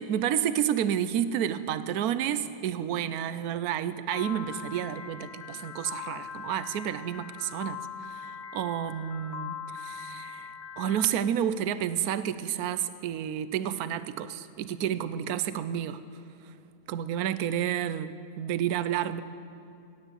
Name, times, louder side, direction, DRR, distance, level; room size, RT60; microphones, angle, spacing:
voice 1, 0.0-7.8 8.1-10.5 10.8-16.0 16.9-19.2, right 10 dB, 75° right, 13 dB, 1.1 m, -30 dB
Piano, 4.1-11.1, left 7 dB, 50° left, 1.0 m, -41 dB
17.5 x 9.7 x 8.1 m, 2.5 s
omnidirectional pair, 1.7 m